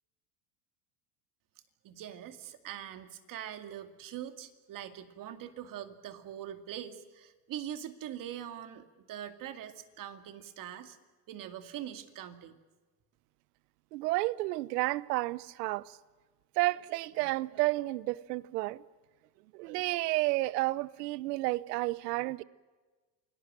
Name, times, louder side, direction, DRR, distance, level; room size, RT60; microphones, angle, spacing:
voice 1, 1.8-11.0 11.3-12.6, right 10 dB, 40° right, 2.3 m, -43 dB
voice 2, 13.9-16.0 16.6-18.8 19.5-22.4, right 20 dB, 70° right, 0.9 m, -31 dB
28.0 x 18.5 x 7.6 m
supercardioid pair, 120°, 49 cm